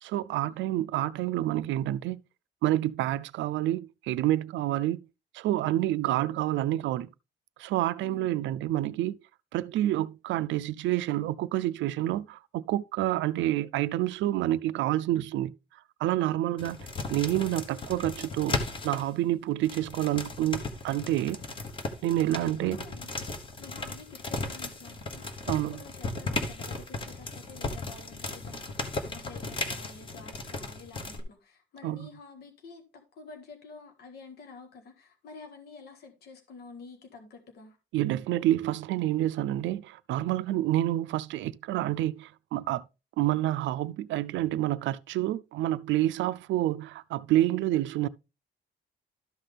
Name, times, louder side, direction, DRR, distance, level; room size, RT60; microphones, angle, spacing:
voice 1, 0.0-2.2 2.6-5.0 5.3-7.1 7.6-9.2 9.5-15.5 16.0-16.8 17.1-18.6 18.8-21.4 22.0-22.8 25.5-25.8 31.8-32.1 37.9-42.8 43.2-48.1, right 14 dB, 85° right, 0.5 m, -28 dB
voice 2, 8.0-8.6 22.4-23.3 23.6-25.4 25.7-37.8, left 4 dB, 60° left, 1.7 m, -49 dB
sound 1, 16.6-19.0 19.6-31.2, left 3 dB, 25° left, 1.0 m, -36 dB
12.5 x 5.8 x 3.4 m
cardioid pair, 175°, 19 cm